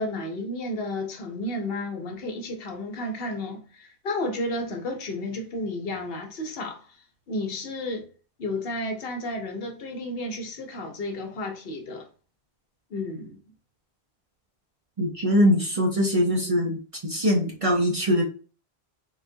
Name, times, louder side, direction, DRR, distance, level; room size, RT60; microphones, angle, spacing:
voice 1, 0.0-6.9 7.3-8.1 8.4-12.1 12.9-13.4, left 1 dB, 65° left, 0.9 m, -32 dB
voice 2, 15.0-16.8 17.0-18.2, equal, 40° right, 0.6 m, -22 dB
3.7 x 2.3 x 2.5 m
omnidirectional pair, 1.1 m